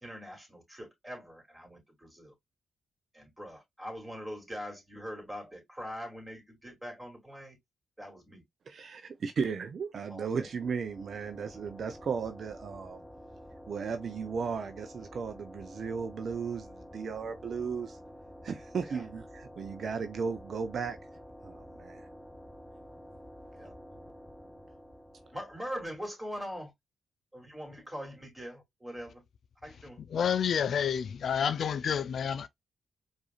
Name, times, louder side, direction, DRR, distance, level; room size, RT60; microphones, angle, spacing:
voice 1, 0.0-2.3 3.1-7.6 8.0-8.4 10.1-10.5 18.8-19.0 23.5-23.7 25.3-26.7 27.3-29.2 29.6-30.0, equal, 15° right, 2.7 m, -42 dB
voice 2, 8.7-13.0 13.7-18.0 18.4-21.0 21.4-22.1, right 5 dB, 60° right, 0.5 m, -35 dB
sound 1, 10.1-25.9, equal, 5° left, 0.9 m, -50 dB
voice 3, 30.1-32.5, left 8 dB, 65° left, 0.3 m, -29 dB
4.8 x 2.6 x 2.3 m
supercardioid pair, 45°, 0 cm